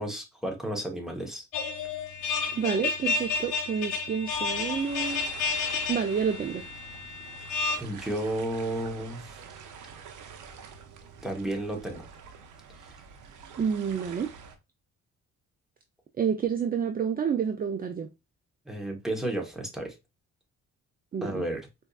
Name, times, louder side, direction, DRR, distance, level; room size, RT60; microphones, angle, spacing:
voice 1, 0.0-1.5 7.8-9.3 11.2-12.0 18.7-19.9 21.2-21.6, right 1 dB, ahead, 1.1 m, -32 dB
sound 1, 1.5-7.8, left 4 dB, 85° left, 0.8 m, -31 dB
voice 2, 2.5-5.3 5.9-6.6 13.6-14.3 16.2-18.1 21.1-21.4, right 7 dB, 30° right, 0.4 m, -29 dB
sound 2, 4.3-14.6, right 6 dB, 80° right, 0.7 m, -47 dB
4.3 x 2.7 x 2.3 m
cardioid pair, 90°, 30 cm